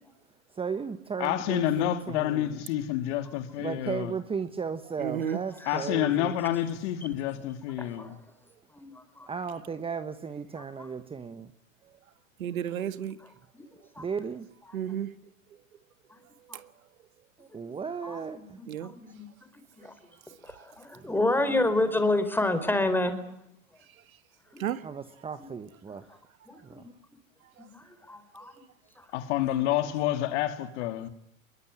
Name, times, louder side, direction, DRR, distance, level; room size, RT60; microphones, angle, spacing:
voice 1, 0.6-2.6 3.6-6.3 9.3-11.5 14.0-14.5 17.4-18.6 21.4-21.6 24.8-26.0 26.6-26.8, right 6 dB, 15° right, 1.4 m, -35 dB
voice 2, 1.2-4.1 5.7-8.2 29.1-31.1, left 12 dB, 55° left, 3.1 m, -28 dB
voice 3, 5.0-5.4 12.4-13.2 14.7-15.1 18.7-18.9 24.6-24.8, right 9 dB, 85° right, 1.9 m, -31 dB
voice 4, 5.6-6.3 7.8-8.1 8.7-9.3 10.5-10.9 13.2-13.3 13.5-13.7 13.9-14.1 14.7-14.8 16.1-16.2 16.5-16.6 17.5-17.7 18.0-19.3 19.8-19.9 20.3-23.2 24.5-24.6 25.4-25.5 26.1-26.2 26.5-26.9 27.6-28.5 29.0-29.1, left 2 dB, 5° left, 4.5 m, -30 dB
25.5 x 22.5 x 10.0 m
hypercardioid pair, 120°, 41 cm